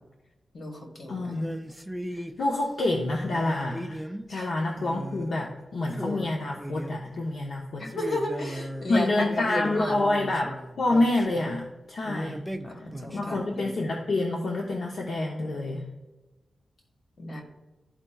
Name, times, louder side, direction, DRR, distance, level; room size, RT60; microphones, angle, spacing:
voice 1, 0.5-1.4 4.3-4.5 7.8-9.9 12.6-13.7 17.2-17.4, left 1 dB, 50° left, 1 dB, 1.4 m, -33 dB
voice 2, 1.1-1.5 2.1-7.8 8.9-12.4 13.1-15.8, left 2 dB, 70° left, -1 dB, 0.7 m, -27 dB
sound 1, 1.3-2.4 3.3-4.4 4.8-5.4 5.6-5.7 5.9-7.2 7.9-11.6 12.0-13.4, equal, 5° right, 0.3 m, -37 dB
12.5 x 4.4 x 2.3 m, 1.1 s
wide cardioid pair, 155°, 0 cm